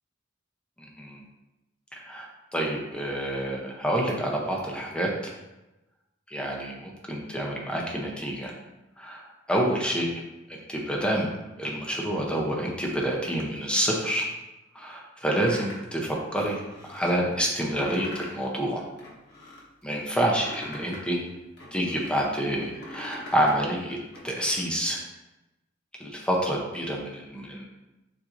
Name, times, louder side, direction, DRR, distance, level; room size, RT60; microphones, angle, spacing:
voice 1, 0.8-1.2 1.9-5.1 6.3-8.5 9.0-10.1 10.5-11.3 11.6-14.2 14.7-18.8 19.8-21.2 21.7-24.0 24.2-25.0 26.0-27.6, right 1 dB, 5° left, -1 dB, 0.7 m, -28 dB
sound 1, 15.3-15.9 16.3-17.1 17.6-18.4 18.8-19.6 20.1-22.2 22.6-23.6 23.9-24.6, left 1 dB, 55° left, 1.1 m, -42 dB
7.1 x 2.7 x 2.6 m, 1.0 s
head